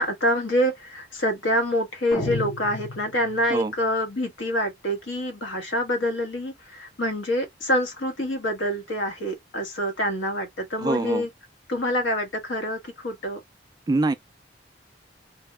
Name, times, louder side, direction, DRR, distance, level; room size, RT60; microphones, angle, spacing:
voice 1, 0.0-11.3 11.7-13.4, equal, 85° left, 1.2 m, -26 dB
sound 1, 2.1-3.6, left 1 dB, 35° left, 1.4 m, -32 dB
voice 2, 10.8-11.3 13.9-14.1, right 3 dB, 20° right, 0.3 m, -24 dB
3.4 x 2.1 x 3.2 m
head